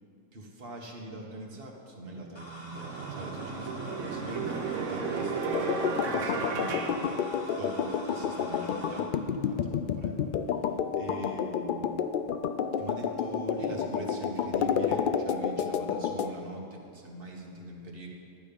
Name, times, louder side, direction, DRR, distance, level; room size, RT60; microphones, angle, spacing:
voice 1, 0.3-6.9 7.6-9.1 9.4-10.3 11.0-12.0 12.8-18.1, right 1 dB, 45° right, 0 dB, 1.6 m, -42 dB
sound 1, 2.0-2.1 2.7-7.9, right 5 dB, 70° right, 1.2 m, -34 dB
sound 2, 2.4-9.0, equal, 20° left, 2.3 m, -45 dB
sound 3, 5.5-16.3, left 7 dB, 65° left, 0.5 m, -30 dB
12.5 x 8.8 x 5.3 m, 2.5 s
omnidirectional pair, 1.4 m